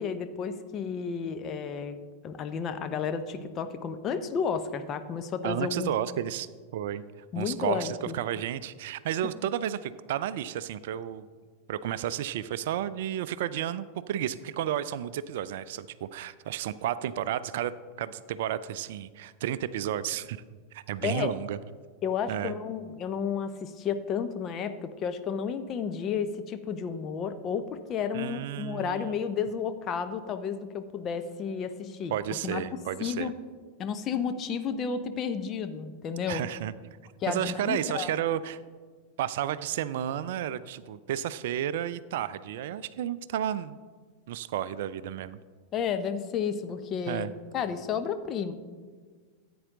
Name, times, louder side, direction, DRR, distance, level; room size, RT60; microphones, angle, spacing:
voice 1, 0.0-5.9 7.3-8.1 21.0-21.3 22.0-32.1 32.4-32.6 33.0-33.3 33.8-36.4 37.2-38.1 45.7-47.3 47.5-48.5, left 6 dB, 30° left, 9 dB, 0.8 m, -32 dB
voice 2, 5.4-6.5 6.7-7.0 7.4-11.3 11.7-17.7 18.0-20.4 20.7-21.6 22.3-22.5 28.1-29.1 32.1-33.3 36.3-36.7 37.3-38.6 39.2-43.8 44.3-45.4 47.1-47.3, right 11 dB, 55° right, 16 dB, 0.4 m, -32 dB
14.0 x 8.6 x 3.7 m, 1.5 s
figure-of-eight pair, 90°, 0 cm